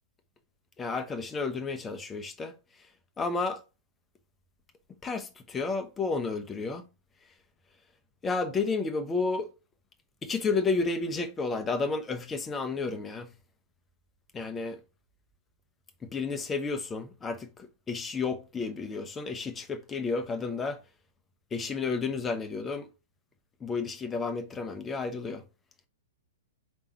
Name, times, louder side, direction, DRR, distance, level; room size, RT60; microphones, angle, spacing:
voice 1, 0.8-2.5 3.2-3.6 5.0-6.9 8.2-9.5 10.2-13.3 14.3-14.8 16.1-20.8 21.5-22.9 23.6-25.4, left 4 dB, 15° left, 0.9 m, -31 dB
5.2 x 3.7 x 5.7 m
figure-of-eight pair, 105°, 0 cm